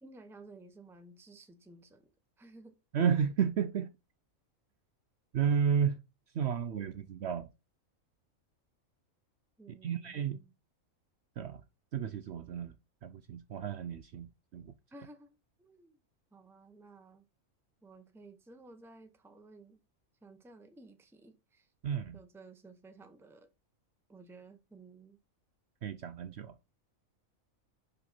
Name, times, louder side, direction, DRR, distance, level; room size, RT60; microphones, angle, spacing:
voice 1, 0.0-2.1 2.4-2.8 9.6-10.5 14.9-16.0 16.3-17.2 17.8-19.8 20.2-21.7 22.1-23.5 24.1-25.2, right 3 dB, ahead, 0.7 m, -55 dB
voice 2, 2.9-3.9 5.3-6.0 6.3-7.5 9.7-10.4 11.4-11.6 11.9-12.8 13.0-14.7 21.8-22.2 25.8-26.5, right 7 dB, 60° right, 0.8 m, -32 dB
5.4 x 5.3 x 4.2 m
omnidirectional pair, 1.4 m